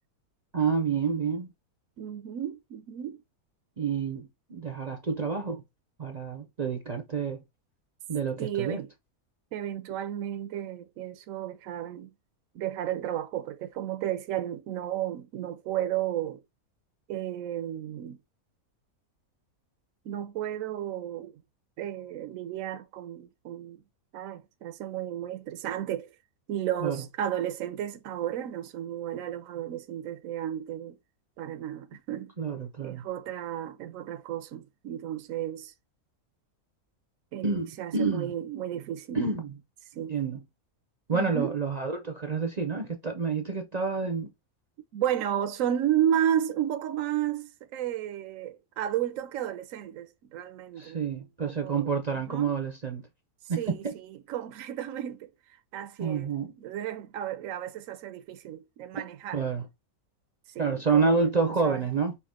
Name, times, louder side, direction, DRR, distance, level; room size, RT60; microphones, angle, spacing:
voice 1, 0.5-1.5 3.8-5.6 6.0-7.4 8.1-8.8 26.8-27.0 32.4-33.0 37.4-38.3 39.1-39.6 40.1-40.4 41.1-44.3 50.8-53.1 53.5-53.9 56.0-56.5 59.3-59.7 60.6-62.2, right 5 dB, 40° right, 0.6 m, -28 dB
voice 2, 2.0-3.2 8.4-8.9 9.5-12.1 12.5-16.4 17.1-18.2 20.0-21.4 21.8-23.8 24.1-26.1 26.5-31.0 31.4-32.3 32.8-35.7 37.3-39.2 40.0-40.1 41.1-41.5 44.9-51.0 51.4-51.9 52.3-52.5 53.6-56.3 56.6-59.4 60.5-61.8, right 11 dB, 70° right, 0.9 m, -33 dB
5.8 x 2.5 x 3.6 m
omnidirectional pair, 1.6 m